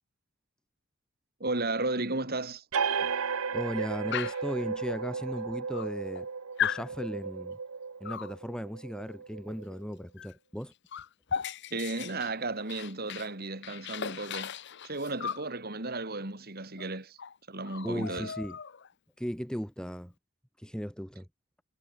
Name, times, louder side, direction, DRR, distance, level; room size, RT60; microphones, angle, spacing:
voice 1, 1.4-2.6 11.7-14.5 14.8-17.2 17.5-18.3, right 2 dB, 45° right, 3.6 m, -34 dB
sound 1, 2.7-9.9, right 5 dB, 85° right, 0.9 m, -34 dB
voice 2, 3.5-6.3 6.6-7.6 8.0-10.7 17.8-18.6 19.2-20.1 20.6-21.3, equal, 5° left, 4.2 m, -36 dB
Dog, 4.1-4.5 5.4-5.5 5.7-6.3 6.6-6.9 8.1-8.4 10.2-10.3 10.6-13.3 13.6-15.5 16.8-16.9 17.2-17.4 17.7-18.9, left 8 dB, 55° left, 0.8 m, -36 dB
head